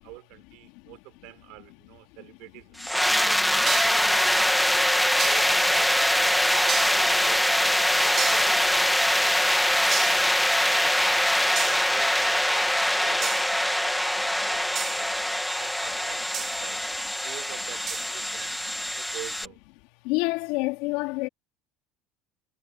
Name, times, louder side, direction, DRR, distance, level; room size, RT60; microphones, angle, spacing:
voice 1, 0.0-5.9 6.4-10.0 10.6-11.3 11.6-15.1 15.6-16.8 17.2-19.6, right 23 dB, 70° right, 5.1 m, -47 dB
sound 1, 2.8-19.5, left 1 dB, ahead, 1.5 m, -23 dB
sound 2, 3.5-9.5, right 23 dB, 85° right, 5.3 m, -46 dB
sound 3, 3.7-4.1 5.2-5.6 6.7-7.1 8.2-8.6 9.9-10.3 11.6-11.9 13.2-13.6 14.7-15.1 16.3-16.6 17.9-18.1, right 8 dB, 30° right, 2.7 m, -32 dB
voice 2, 20.0-21.3, left 24 dB, 75° left, 3.6 m, -27 dB
cardioid pair, 150°, 0 cm